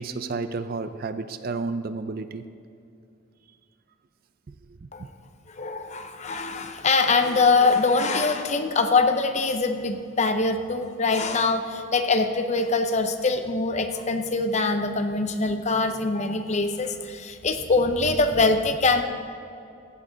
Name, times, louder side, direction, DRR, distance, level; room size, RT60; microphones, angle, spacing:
voice 1, 0.0-2.4 4.5-4.6 4.8-5.1, right 3 dB, 45° right, 11 dB, 0.4 m, -31 dB
voice 2, 5.5-19.0, left 3 dB, 35° left, 7 dB, 0.6 m, -23 dB
15.0 x 8.5 x 3.9 m, 2.6 s
head